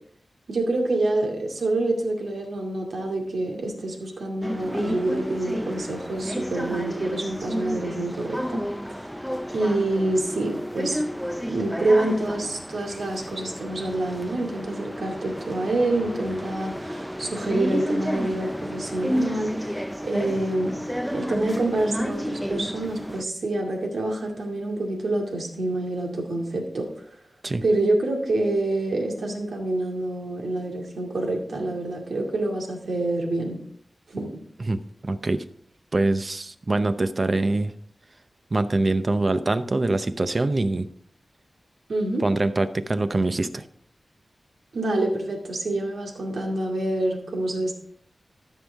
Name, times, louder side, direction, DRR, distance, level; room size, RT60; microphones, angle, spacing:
voice 1, 0.5-9.0 9.5-11.0 11.5-20.8 21.1-26.9 27.6-33.6 34.1-34.3 41.9-42.2 44.7-47.7, right 2 dB, 80° right, 0 dB, 2.3 m, -27 dB
sound 1, 4.4-23.2, equal, ahead, 0.4 m, -31 dB
sound 2, 4.6-8.3 10.8-11.2, equal, 60° right, 3.2 m, -47 dB
voice 2, 34.7-35.4 35.9-37.7 38.5-40.9 42.2-43.6, right 2 dB, 40° right, 10 dB, 0.7 m, -24 dB
13.5 x 6.4 x 3.5 m, 0.63 s
wide cardioid pair, 95°, 0 cm